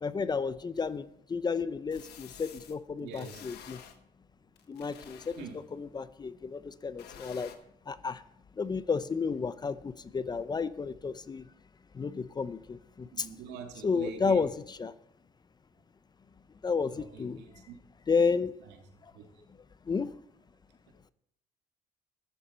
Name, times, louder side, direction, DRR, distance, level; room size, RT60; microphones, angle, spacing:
voice 1, 0.0-3.8 4.7-5.5 5.7-7.5 7.9-8.2 8.6-11.5 11.9-13.3 13.8-14.9 16.6-17.4 18.1-18.6 19.9-20.2, left 5 dB, 25° left, 16 dB, 0.6 m, -32 dB
sound 1, 0.8-0.9 1.9-2.8 3.1-4.0 4.6-5.7 7.0-7.6, left 9 dB, 80° left, 1.4 m, -50 dB
voice 2, 3.0-3.4 5.4-5.6 13.1-14.4 16.9-17.8 18.6-18.8 19.1-19.3, right 7 dB, 85° right, 4 dB, 2.3 m, -45 dB
14.5 x 11.5 x 4.4 m, 0.73 s
cardioid pair, 110°, 17 cm